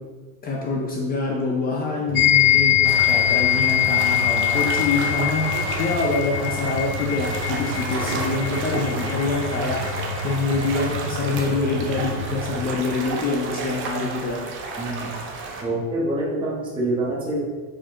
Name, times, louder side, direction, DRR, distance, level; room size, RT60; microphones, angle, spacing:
voice 1, 0.4-5.4 5.8-9.8 10.2-14.4, left 3 dB, 20° left, -1 dB, 0.5 m, -25 dB
sound 1, 2.1-12.5, left 4 dB, 45° left, 1.3 m, -32 dB
sound 2, 2.2-10.8, left 13 dB, 75° left, 0.7 m, -23 dB
sound 3, 2.8-15.6, right 3 dB, 25° right, 0.7 m, -32 dB
voice 2, 14.8-15.1 15.6-17.5, right 1 dB, 10° right, -6 dB, 1.1 m, -26 dB
6.2 x 5.1 x 3.7 m, 1.4 s
supercardioid pair, 155°, 45 cm